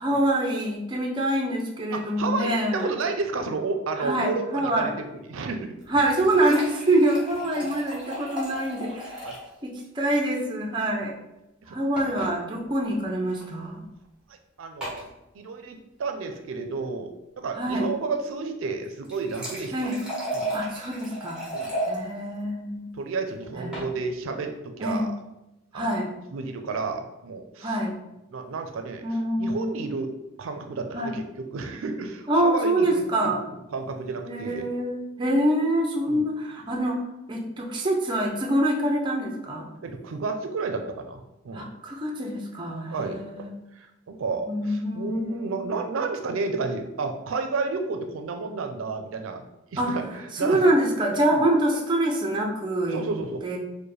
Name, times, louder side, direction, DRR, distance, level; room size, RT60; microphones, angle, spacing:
voice 1, 0.0-2.9 4.0-4.9 5.9-9.2 9.6-11.2 11.7-13.8 17.5-17.9 19.7-20.0 20.5-21.4 21.8-22.9 23.6-23.8 24.8-25.1 25.7-26.1 27.6-28.0 29.0-29.8 30.9-31.2 32.3-33.4 34.3-39.7 41.5-43.5 44.5-45.7 49.8-50.0 50.3-53.0 53.4-53.6, right 1 dB, 25° right, 0 dB, 0.5 m, -25 dB
voice 2, 1.9-4.9 5.3-5.7 9.2-9.4 11.7-11.8 14.3-15.0 15.3-17.1 17.4-19.7 20.3-20.5 21.5-21.7 22.9-25.2 25.7-25.9 26.3-27.8 28.3-30.1 30.4-33.4 33.7-34.7 36.1-36.2 39.8-41.7 42.9-43.5 43.8-49.5 49.7-50.6 52.9-53.4, right 4 dB, 85° right, 6 dB, 0.4 m, -31 dB
sound 1, 5.8-9.5 9.8-9.9 10.2-10.3 12.0-12.3 13.3-13.5 14.8-15.1 18.8-22.0 23.4-23.9, right 1 dB, 5° right, 0.9 m, -34 dB
4.7 x 2.1 x 3.2 m, 0.93 s
head